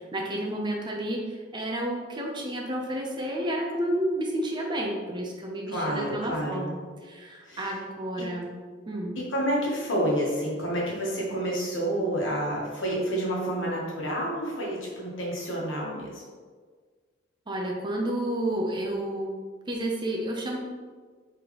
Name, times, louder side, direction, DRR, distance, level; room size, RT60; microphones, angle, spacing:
voice 1, 0.0-8.5 8.9-9.1 17.5-19.3 19.7-20.6, right 1 dB, 25° right, 0 dB, 0.5 m, -31 dB
voice 2, 5.7-6.7 7.4-7.8 8.2-8.3 9.3-16.2, right 1 dB, 75° left, -3 dB, 1.2 m, -29 dB
4.2 x 3.4 x 2.9 m, 1.5 s
head